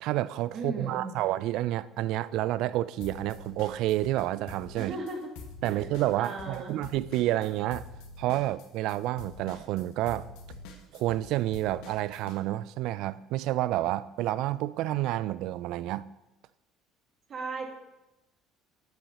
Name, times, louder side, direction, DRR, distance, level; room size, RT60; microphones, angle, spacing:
voice 1, 0.0-4.9 5.6-7.9 8.2-10.3 10.9-16.1, right 15 dB, 70° right, 0.4 m, -29 dB
voice 2, 0.5-1.2 4.8-5.2 5.7-5.9 6.2-6.8 17.3-17.7, right 3 dB, 45° right, 2.1 m, -36 dB
sound 1, 3.0-4.2 4.5-12.4, left 4 dB, 80° left, 1.5 m, -46 dB
10.5 x 5.7 x 5.3 m
supercardioid pair, 95°, 0 cm